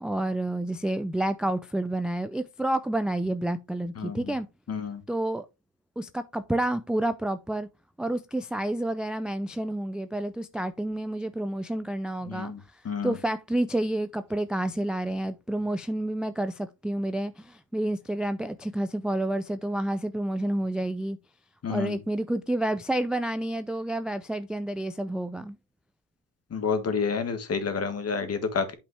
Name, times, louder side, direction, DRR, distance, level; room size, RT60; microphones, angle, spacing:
voice 1, 0.0-4.5 5.1-5.5 6.0-7.7 8.0-12.5 13.0-21.2 21.7-25.6, right 1 dB, ahead, 0.3 m, -29 dB
voice 2, 4.0-4.3 4.7-5.0 12.3-12.6 12.9-13.2 21.6-22.0 26.5-28.7, left 5 dB, 35° left, 1.7 m, -29 dB
8.4 x 5.4 x 3.2 m
cardioid pair, 105°, 41 cm